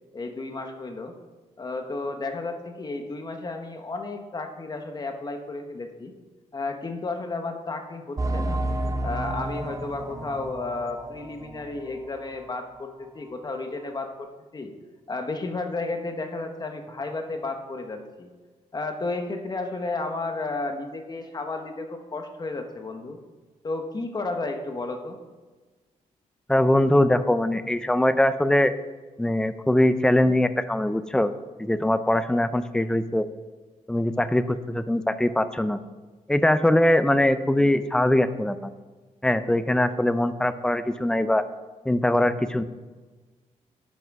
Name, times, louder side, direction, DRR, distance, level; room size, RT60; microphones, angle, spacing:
voice 1, 0.1-1.1 1.6-6.1 6.5-8.6 9.0-14.7 15.1-18.3 18.7-23.2 23.6-25.2, left 3 dB, 30° left, 5 dB, 1.1 m, -32 dB
sound 1, 8.2-12.5 12.8-12.9 13.4-13.5, right 1 dB, 25° right, 0.8 m, -31 dB
voice 2, 26.5-28.7 29.2-31.3 31.6-33.3 33.9-35.8 36.3-38.7 39.2-41.4 41.9-42.6, left 1 dB, 5° left, 11 dB, 0.5 m, -22 dB
11.0 x 6.0 x 5.4 m, 1.3 s
cardioid pair, 115°, 13 cm